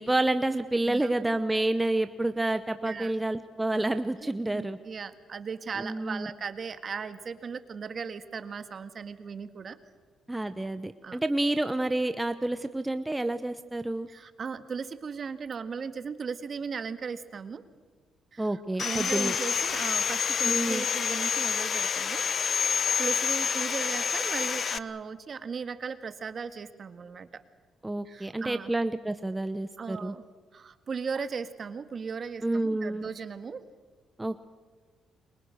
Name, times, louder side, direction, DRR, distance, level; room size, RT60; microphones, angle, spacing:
voice 1, 0.0-4.8 5.8-6.3 10.3-14.1 18.4-19.4 20.4-20.8 27.8-30.1 32.4-33.0 34.2-34.5, right 2 dB, 10° right, 10 dB, 0.9 m, -29 dB
voice 2, 2.8-3.1 4.2-9.8 11.0-11.2 14.1-17.6 18.3-22.2 22.6-27.4 28.1-28.7 29.8-30.2 30.5-33.6, right 5 dB, 45° right, 10 dB, 1.8 m, -37 dB
Sawing, 18.8-24.8, left 7 dB, 50° left, 0.8 m, -28 dB
30.0 x 23.5 x 6.5 m, 1.4 s
cardioid pair, 90°, 0 cm